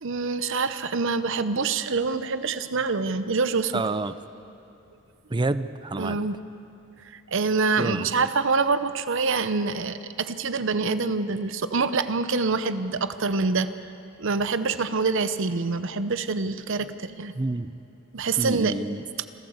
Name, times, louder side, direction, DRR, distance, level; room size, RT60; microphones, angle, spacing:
voice 1, 0.0-3.8 6.0-6.4 7.1-13.7 14.2-17.3 18.1-18.8, right 4 dB, 65° right, 12 dB, 0.8 m, -26 dB
voice 2, 3.7-4.2 5.3-6.3 7.8-8.3 17.3-17.7 18.4-19.1, right 2 dB, 20° right, 13 dB, 0.5 m, -28 dB
26.5 x 13.5 x 8.0 m, 2.8 s
head